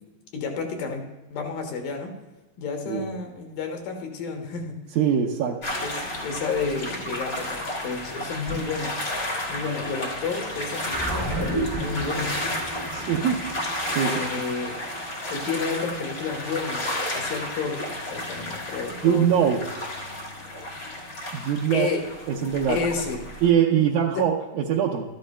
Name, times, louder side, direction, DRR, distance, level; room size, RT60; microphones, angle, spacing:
voice 1, 0.3-1.0 1.3-2.1 2.6-4.8 5.8-9.0 9.5-12.3 14.0-14.7 15.3-19.3 21.7-22.0 22.7-23.2 24.1-24.3, left 5 dB, 75° left, 3 dB, 2.7 m, -31 dB
voice 2, 5.0-5.7 12.9-13.4 14.0-14.2 19.0-19.6 21.3-21.9 22.3-22.8 23.4-25.0, right 8 dB, 75° right, -3 dB, 1.9 m, -22 dB
sound 1, 5.6-23.5, left 1 dB, 55° left, 0.9 m, -32 dB
sound 2, 10.9-15.5, right 1 dB, 30° right, 0.4 m, -32 dB
13.5 x 10.5 x 2.2 m, 1.1 s
omnidirectional pair, 4.2 m